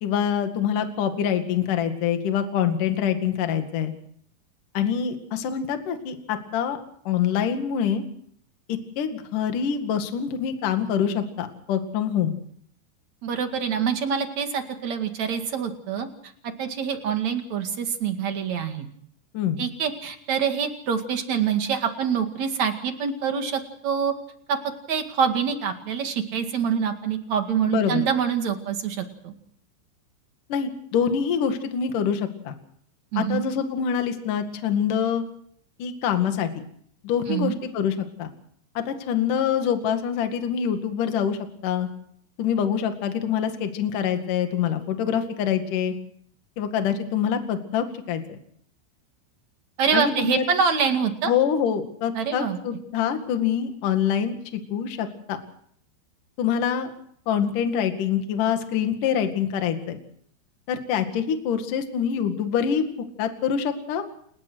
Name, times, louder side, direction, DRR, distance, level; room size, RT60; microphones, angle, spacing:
voice 1, 0.0-3.9 4.7-6.8 7.0-8.0 8.7-12.4 19.3-19.6 27.7-28.0 30.5-32.5 33.2-35.2 35.8-36.6 37.0-38.3 38.7-41.4 41.6-41.9 42.4-45.9 46.6-48.4 49.9-50.4 51.2-55.4 56.4-56.9 57.3-60.0 60.7-62.8 63.2-64.0, left 8 dB, 50° left, 6 dB, 3.1 m, -25 dB
voice 2, 13.2-16.1 16.6-18.9 19.6-24.1 24.5-24.6 24.9-29.3 33.1-33.4 37.3-37.6 49.8-51.3 52.1-52.6, right 7 dB, 45° right, 6 dB, 2.7 m, -25 dB
29.5 x 17.5 x 6.3 m, 0.65 s
omnidirectional pair, 5.5 m